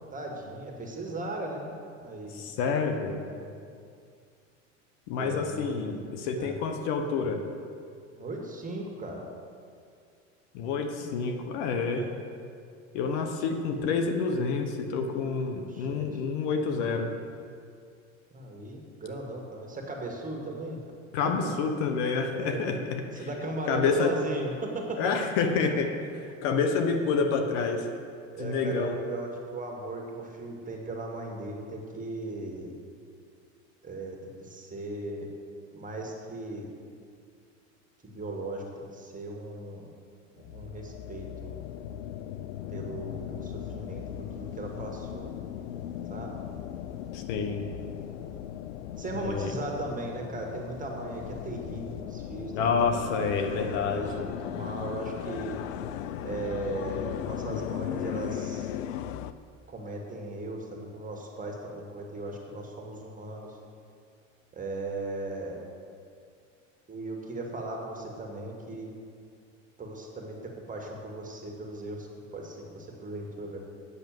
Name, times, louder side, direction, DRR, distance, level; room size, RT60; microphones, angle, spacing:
voice 1, 0.0-2.5 3.3-3.7 5.1-6.1 6.3-6.6 8.1-9.2 11.7-12.2 15.6-16.2 18.3-20.8 21.2-21.5 22.3-22.7 23.1-25.1 28.3-32.7 33.8-35.3 35.7-36.7 38.0-39.9 40.3-41.6 42.7-45.3 46.1-46.4 49.0-53.0 53.9-55.6 56.2-58.7 59.7-63.5 64.5-65.6 66.9-69.0 69.8-73.6, right 2 dB, 20° right, 1 dB, 2.1 m, -37 dB
voice 2, 2.3-3.2 5.1-7.4 10.5-12.0 12.9-17.1 21.1-23.0 23.7-24.1 25.0-25.9 26.4-27.9 28.4-29.0 47.1-47.7 49.1-49.5 52.5-54.0, left 5 dB, 65° left, 5 dB, 1.2 m, -28 dB
sound 1, 40.4-59.3, left 10 dB, 80° left, 0.6 m, -37 dB
8.3 x 6.8 x 7.7 m, 2.3 s
hypercardioid pair, 95°, 39 cm